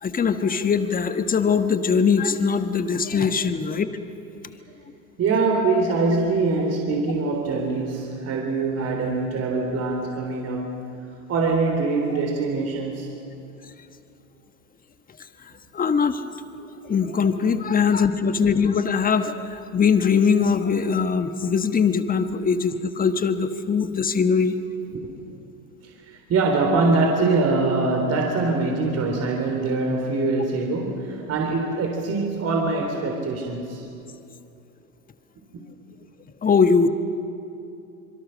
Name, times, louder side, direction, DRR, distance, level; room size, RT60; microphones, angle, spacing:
voice 1, 0.0-3.9 15.7-16.2 16.6-24.6 36.4-36.9, left 6 dB, 20° left, 9 dB, 1.4 m, -21 dB
voice 2, 5.2-10.8 11.3-13.1 24.9-25.1 25.8-33.9, right 3 dB, 35° right, 1 dB, 3.7 m, -23 dB
26.0 x 23.5 x 6.5 m, 2.8 s
hypercardioid pair, 95°, 44 cm